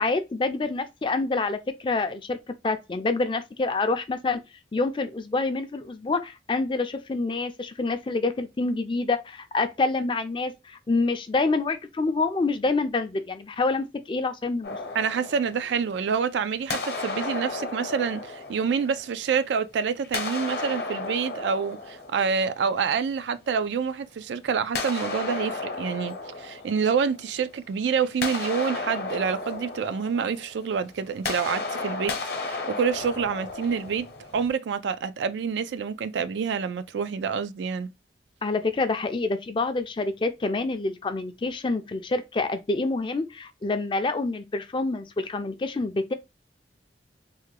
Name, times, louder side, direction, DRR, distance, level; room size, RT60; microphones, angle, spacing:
voice 1, 0.0-2.4 2.6-4.4 4.7-14.8 38.4-46.1, left 3 dB, 30° left, 0.4 m, -27 dB
sound 1, 14.6-16.3 16.7-19.5 20.0-22.9 24.7-27.5 27.8-34.5, left 3 dB, 60° left, 0.8 m, -34 dB
voice 2, 14.9-32.1 32.4-34.1 34.3-37.9, right 6 dB, 85° right, 0.3 m, -27 dB
3.4 x 2.2 x 3.2 m
head